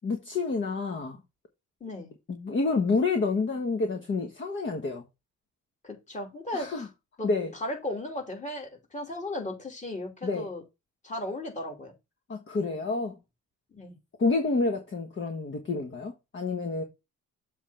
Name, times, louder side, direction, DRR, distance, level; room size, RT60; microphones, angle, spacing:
voice 1, 0.0-1.2 2.3-5.0 6.5-6.9 7.2-7.5 10.2-10.5 12.3-13.2 14.2-16.8, left 3 dB, 40° left, 1.4 m, -28 dB
voice 2, 1.8-2.1 5.8-6.8 7.2-10.6 11.0-11.9 13.7-14.0, left 1 dB, 25° left, 2.9 m, -36 dB
7.2 x 3.6 x 5.6 m
cardioid pair, 90°, 30 cm